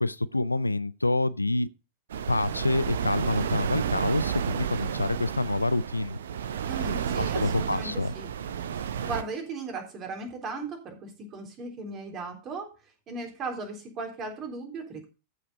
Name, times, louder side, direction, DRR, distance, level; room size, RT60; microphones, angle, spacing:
voice 1, 0.0-1.7 2.3-6.2 7.2-8.1, left 2 dB, 85° left, 0.4 m, -27 dB
sound 1, 2.1-9.2, right 8 dB, 65° right, 0.7 m, -31 dB
voice 2, 6.7-8.3 8.7-12.7 13.1-15.1, right 3 dB, 30° right, 3.7 m, -37 dB
14.0 x 5.9 x 4.1 m
figure-of-eight pair, 90°, 0 cm